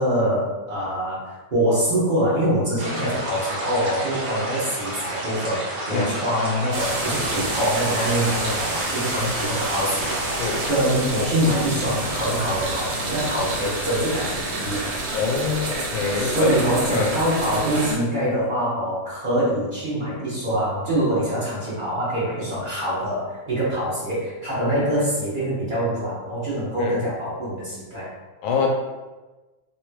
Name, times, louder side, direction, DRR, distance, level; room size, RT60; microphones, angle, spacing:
voice 1, 0.0-10.4 10.7-14.8 16.2-28.1, equal, 40° right, -9 dB, 0.7 m, -24 dB
sound 1, 2.8-10.7, right 1 dB, 60° right, 1.4 m, -31 dB
sound 2, 6.7-18.0, right 2 dB, 80° right, 1.5 m, -29 dB
voice 2, 15.1-16.6 16.9-17.1 24.6-24.7 26.8-27.0 28.4-28.7, left 5 dB, 85° left, 1 dB, 1.4 m, -25 dB
3.5 x 3.0 x 2.3 m, 1.2 s
omnidirectional pair, 2.2 m